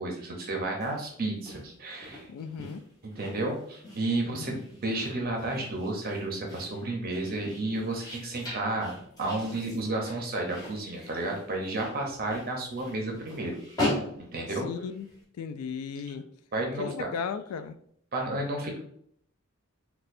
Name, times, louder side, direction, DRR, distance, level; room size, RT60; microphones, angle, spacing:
voice 1, 0.0-2.3 3.2-13.6 14.2-14.7 16.5-17.1 18.1-18.8, right 2 dB, 45° right, 1 dB, 0.6 m, -32 dB
sound 1, 0.7-15.2, left 1 dB, 20° left, 0.9 m, -40 dB
voice 2, 2.3-2.8 4.3-4.6 14.5-15.1 15.4-16.3 16.8-17.8, left 6 dB, 85° left, 12 dB, 0.3 m, -36 dB
4.1 x 2.3 x 2.5 m, 0.66 s
head